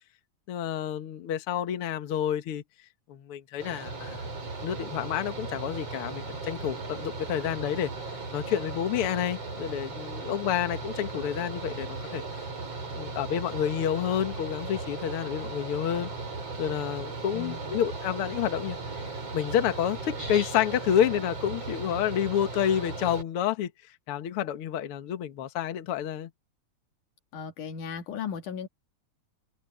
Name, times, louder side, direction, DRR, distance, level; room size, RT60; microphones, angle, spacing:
voice 1, 0.5-2.6 3.1-4.2 4.6-7.9 8.3-12.5 12.9-16.1 16.6-26.3, left 10 dB, 55° left, 1.9 m, -29 dB
Mechanical fan, 3.6-23.2, right 3 dB, 50° right, 7.2 m, -37 dB
voice 2, 17.3-17.7 27.3-28.7, left 6 dB, 90° left, 3.5 m, -36 dB
open air
omnidirectional pair, 3.5 m